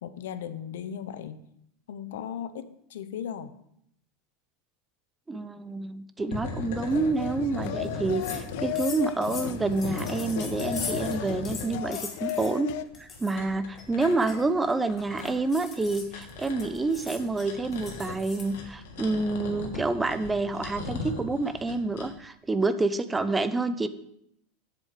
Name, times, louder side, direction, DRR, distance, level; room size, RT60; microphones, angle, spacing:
voice 1, 0.0-1.4 1.9-3.5, left 8 dB, 90° left, 13 dB, 0.7 m, -37 dB
voice 2, 5.3-12.7 13.0-23.9, right 3 dB, 10° right, 12 dB, 0.4 m, -28 dB
sound 1, 6.2-8.7 9.1-11.7 12.9-22.1, left 3 dB, 75° left, 2.1 m, -38 dB
sound 2, 6.9-12.8, left 15 dB, 55° left, 0.5 m, -35 dB
sound 3, 7.8-7.9 8.2-8.4 8.8-11.2 11.4-12.5 12.9-13.3 13.8-18.5, left 5 dB, 20° left, 1.2 m, -41 dB
7.7 x 7.3 x 4.9 m, 0.74 s
supercardioid pair, 165°, 0 cm